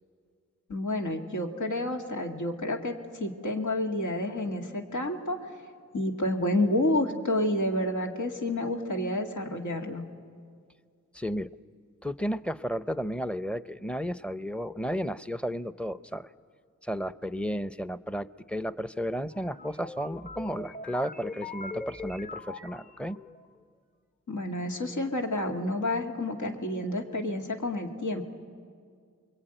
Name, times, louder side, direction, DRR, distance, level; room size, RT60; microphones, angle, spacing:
voice 1, 0.7-5.6 5.9-10.0 24.3-28.2, left 1 dB, 90° left, 2 dB, 2.1 m, -29 dB
voice 2, 11.1-11.6 12.0-16.3 16.8-23.2, equal, 5° left, 14 dB, 0.6 m, -33 dB
sound 1, 19.3-23.5, left 3 dB, 25° left, 1.0 m, -41 dB
29.5 x 22.0 x 9.1 m, 2.2 s
wide cardioid pair, 80°, 30 cm